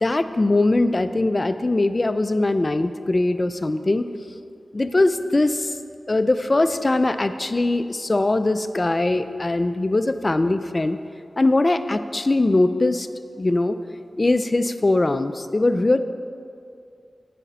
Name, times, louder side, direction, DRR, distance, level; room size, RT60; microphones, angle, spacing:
voice 1, 0.0-4.1 4.7-5.7 6.1-11.0 11.4-13.1 13.4-13.8 14.2-16.0, left 2 dB, 35° left, 11 dB, 0.4 m, -21 dB
8.4 x 5.1 x 5.5 m, 2.4 s
cardioid pair, 55°, 0 cm